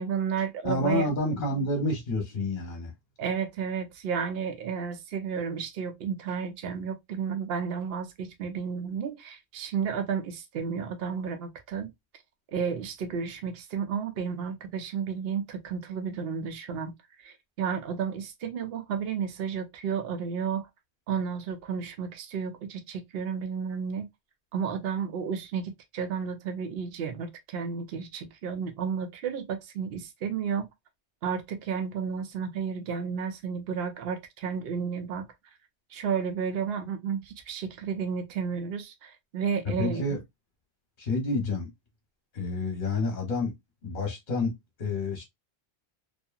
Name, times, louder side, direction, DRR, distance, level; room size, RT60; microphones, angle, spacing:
voice 1, 0.0-1.0 3.2-11.9 12.5-16.9 17.2-20.7 21.1-24.1 24.5-30.7 31.2-35.3 35.9-40.1, right 6 dB, 70° right, 0.8 m, -32 dB
voice 2, 0.6-2.9 39.6-40.2 41.0-41.7 42.3-43.5 43.8-45.2, left 2 dB, 45° left, 1.0 m, -29 dB
2.7 x 2.5 x 2.3 m
omnidirectional pair, 1.1 m